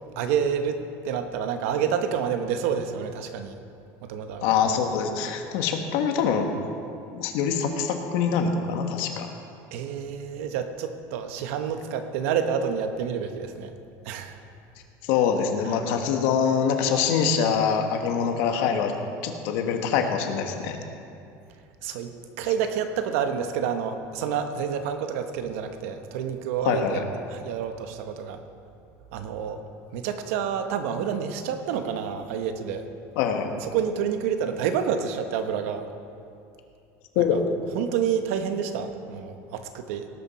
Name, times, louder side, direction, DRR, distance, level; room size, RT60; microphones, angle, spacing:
voice 1, 0.2-3.5 4.0-4.5 9.7-13.7 14.0-14.4 21.8-27.0 27.3-28.4 29.1-29.6 29.9-32.8 33.6-35.8 37.2-37.4 37.7-40.1, right 7 dB, 80° right, 7 dB, 1.1 m, -28 dB
voice 2, 4.4-6.5 7.1-9.3 15.0-18.9 19.2-20.8 26.6-27.0 33.2-33.5 37.1-37.4, left 7 dB, 65° left, 4 dB, 1.4 m, -24 dB
18.0 x 7.2 x 5.8 m, 2.5 s
cardioid pair, 170°, 7 cm